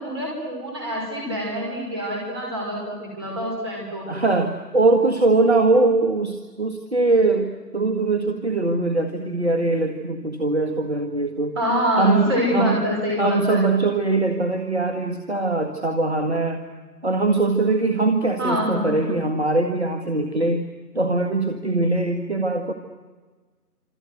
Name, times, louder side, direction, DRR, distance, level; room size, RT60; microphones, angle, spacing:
voice 1, 0.0-4.1 11.6-13.6 18.4-19.1, equal, 15° right, -1 dB, 5.7 m, -25 dB
voice 2, 4.1-11.6 12.0-12.8 13.2-16.6 17.0-20.6 20.9-22.7, right 2 dB, 40° right, 5 dB, 1.9 m, -21 dB
27.0 x 27.0 x 8.0 m, 1.3 s
figure-of-eight pair, 165°, 48 cm